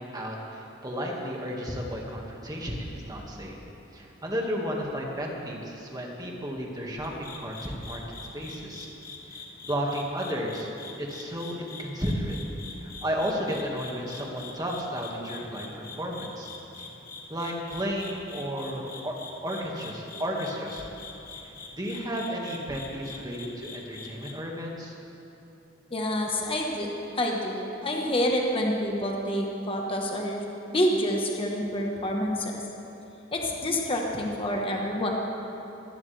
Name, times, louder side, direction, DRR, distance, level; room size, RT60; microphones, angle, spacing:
voice 1, 0.0-3.6 3.9-8.9 9.3-10.7 11.0-12.4 12.8-16.5 16.8-16.9 17.3-19.1 19.4-20.9 21.4-25.0, equal, 20° right, -1 dB, 1.9 m, -33 dB
sound 1, 7.0-24.3, left 4 dB, 45° left, 1.4 m, -44 dB
voice 2, 25.9-26.9 27.1-30.4 30.7-32.6 33.3-35.1, left 1 dB, 30° left, 0 dB, 1.3 m, -27 dB
20.0 x 16.0 x 3.4 m, 3.0 s
head